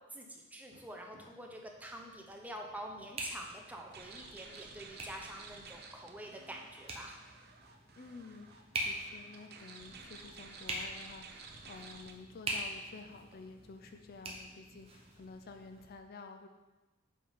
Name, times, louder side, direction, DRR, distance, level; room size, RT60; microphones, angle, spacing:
voice 1, 0.1-7.2, right 1 dB, 10° right, 1 dB, 0.7 m, -47 dB
sound 1, 0.7-15.9, right 1 dB, 30° right, 1.0 m, -45 dB
sound 2, 3.9-12.1, right 4 dB, 50° right, 0.7 m, -53 dB
voice 2, 8.0-8.5 8.8-16.5, left 4 dB, 50° left, 6 dB, 0.4 m, -51 dB
7.5 x 3.7 x 5.5 m, 1.2 s
head